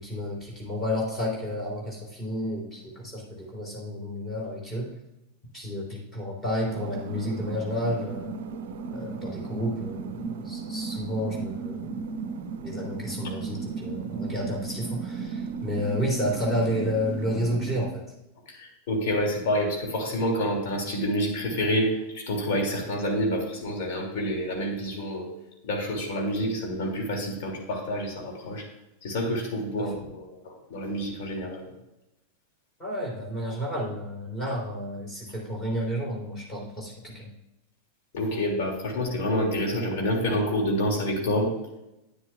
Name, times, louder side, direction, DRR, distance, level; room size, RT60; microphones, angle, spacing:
voice 1, 0.0-4.9 5.5-8.3 8.9-12.0 12.6-18.0 29.8-29.9 32.8-37.3, equal, 15° left, -2 dB, 3.4 m, -31 dB
sound 1, 6.7-17.9, right 5 dB, 55° right, 0.6 m, -35 dB
voice 2, 18.5-25.3 25.6-28.7 29.0-31.7 38.1-41.5, equal, 50° left, 0 dB, 2.4 m, -28 dB
9.9 x 9.4 x 2.3 m, 0.91 s
figure-of-eight pair, 90°, 0 cm